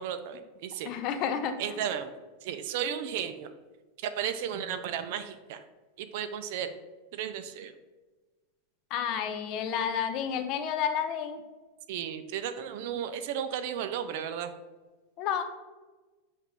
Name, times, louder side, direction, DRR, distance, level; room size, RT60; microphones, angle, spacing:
voice 1, 0.0-0.9 1.6-2.1 2.4-3.5 4.2-5.6 6.0-6.7 7.1-7.7 11.9-14.5, right 9 dB, 65° right, 10 dB, 0.4 m, -34 dB
voice 2, 0.9-1.8 8.9-11.4 15.2-15.4, left 8 dB, 45° left, 8 dB, 0.5 m, -30 dB
6.2 x 2.5 x 3.4 m, 1.2 s
supercardioid pair, 140°, 0 cm